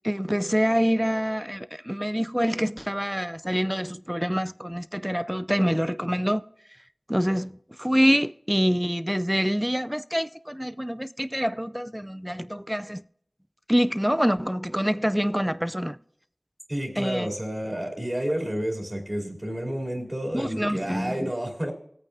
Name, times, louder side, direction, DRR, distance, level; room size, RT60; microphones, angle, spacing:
voice 1, 0.0-6.4 7.1-13.0 13.7-16.0 17.0-17.3 20.3-21.3, equal, 5° right, 0.3 m, -26 dB
voice 2, 16.7-21.7, equal, 30° right, 2.7 m, -30 dB
18.5 x 8.7 x 2.6 m
wide cardioid pair, 40°, 0 cm